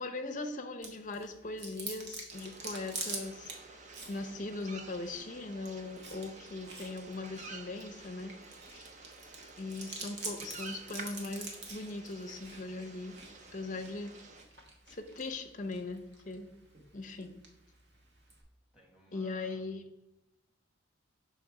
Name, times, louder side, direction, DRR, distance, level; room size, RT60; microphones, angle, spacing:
voice 1, 0.0-8.3 8.7-8.9 9.6-13.2 13.5-14.1 14.9-16.5 16.9-17.3 19.1-19.8, left 2 dB, 40° left, 5 dB, 0.6 m, -40 dB
Chewing mastication, 0.8-18.4, right 3 dB, 55° right, 1.1 m, -47 dB
sound 1, 2.3-14.4, right 3 dB, 35° right, 0.5 m, -51 dB
voice 2, 6.2-6.5 13.2-13.6 18.7-19.7, right 1 dB, 5° right, -3 dB, 1.4 m, -61 dB
6.2 x 3.4 x 4.6 m, 0.92 s
head